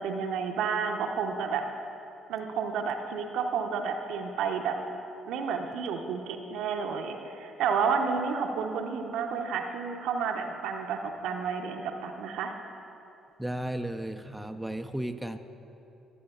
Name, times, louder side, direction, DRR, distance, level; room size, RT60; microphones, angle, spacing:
voice 1, 0.0-1.7 2.3-4.8 5.3-12.5, right 6 dB, 65° right, 4 dB, 0.7 m, -31 dB
voice 2, 13.4-15.4, right 1 dB, 5° right, 7 dB, 0.5 m, -34 dB
19.0 x 7.8 x 2.4 m, 2.9 s
hypercardioid pair, 45°, 0 cm